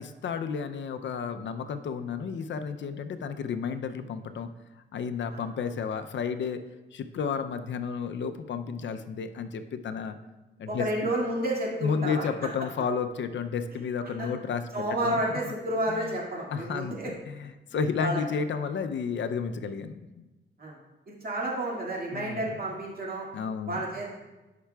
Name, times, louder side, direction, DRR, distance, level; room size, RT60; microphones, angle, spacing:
voice 1, 0.0-4.5 4.9-6.6 6.9-10.2 10.6-11.1 11.8-14.7 15.0-15.2 15.9-16.1 16.5-20.2 22.1-22.5 23.3-23.8, left 6 dB, 70° left, 9 dB, 0.5 m, -32 dB
voice 2, 10.7-12.3 14.0-14.3 14.7-17.1 18.0-18.2 20.6-20.8 21.1-23.3 23.7-24.2, right 1 dB, 50° right, -3 dB, 2.1 m, -30 dB
13.0 x 5.8 x 2.3 m, 1.1 s
cardioid pair, 105°, 20 cm